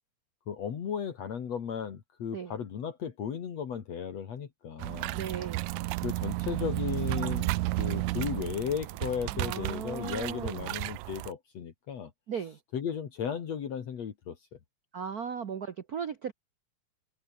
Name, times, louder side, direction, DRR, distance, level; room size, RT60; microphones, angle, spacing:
voice 1, 0.5-5.2 6.0-7.5 7.8-12.1 12.7-14.4, left 7 dB, 60° left, 3.3 m, -35 dB
sound 1, 4.8-11.3, right 19 dB, 90° right, 2.0 m, -33 dB
voice 2, 5.1-5.7 9.3-10.8 12.3-12.6 14.9-16.3, right 7 dB, 70° right, 0.8 m, -37 dB
omnidirectional pair, 3.4 m